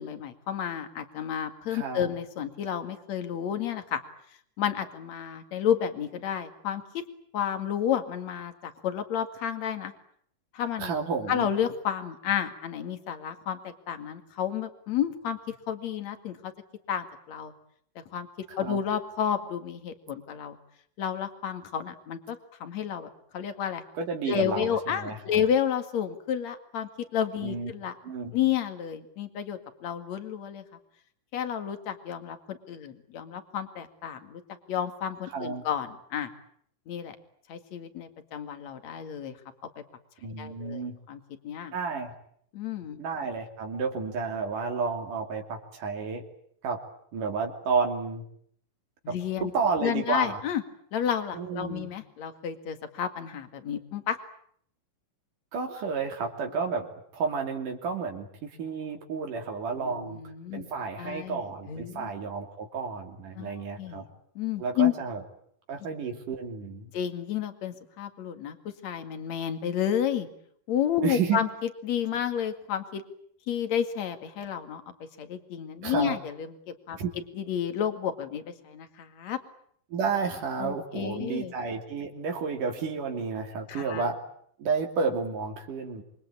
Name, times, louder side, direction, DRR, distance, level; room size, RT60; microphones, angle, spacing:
voice 1, 0.0-4.0 4.6-7.0 7.3-9.9 10.5-11.0 11.3-16.5 16.9-17.5 18.0-18.3 18.6-20.6 21.0-23.8 24.3-27.9 28.3-30.6 31.3-34.4 34.7-36.3 36.9-37.2 37.5-39.4 39.8-39.9 40.4-41.7 42.5-43.0 49.0-49.5 49.8-50.6 50.9-54.2 59.7-60.7 61.0-62.1 63.4-64.0 64.3-64.9 66.9-68.6 68.8-70.3 70.7-71.5 71.8-73.0 73.5-77.0 77.4-79.4 80.6-81.5 83.7-84.0, left 9 dB, 55° left, 8 dB, 3.2 m, -31 dB
voice 2, 1.7-2.1 10.8-11.5 18.5-18.8 23.9-25.5 27.4-27.7 28.0-28.4 35.3-35.6 40.2-41.0 41.7-42.1 43.0-46.2 46.6-46.8 47.1-48.2 49.1-50.4 51.3-51.9 55.5-60.2 60.5-64.1 64.6-65.2 65.7-66.9 71.0-71.4 75.8-76.2 77.0-77.1 79.9-84.2 84.6-86.0, right 5 dB, 70° right, 3 dB, 4.4 m, -31 dB
27.0 x 23.5 x 8.7 m, 0.65 s
omnidirectional pair, 3.8 m